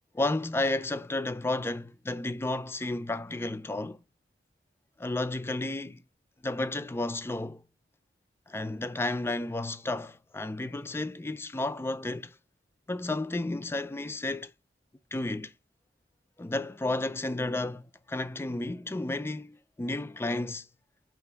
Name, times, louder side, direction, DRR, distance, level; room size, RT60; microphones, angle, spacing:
voice 1, 0.1-4.0 5.0-6.0 6.4-7.6 8.5-12.3 12.9-14.5 15.1-15.5 16.4-20.7, left 2 dB, 15° left, 0.3 m, -32 dB
5.8 x 2.5 x 3.3 m
head